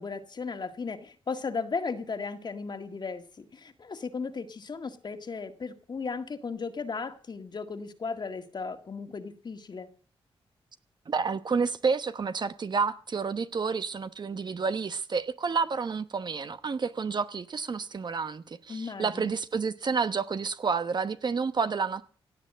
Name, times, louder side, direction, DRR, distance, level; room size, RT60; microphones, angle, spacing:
voice 1, 0.0-9.9 18.7-19.4, left 4 dB, 45° left, 1.9 m, -36 dB
voice 2, 11.1-22.0, right 5 dB, 50° right, 1.0 m, -30 dB
17.0 x 9.3 x 7.6 m
cardioid pair, 85°, 10 cm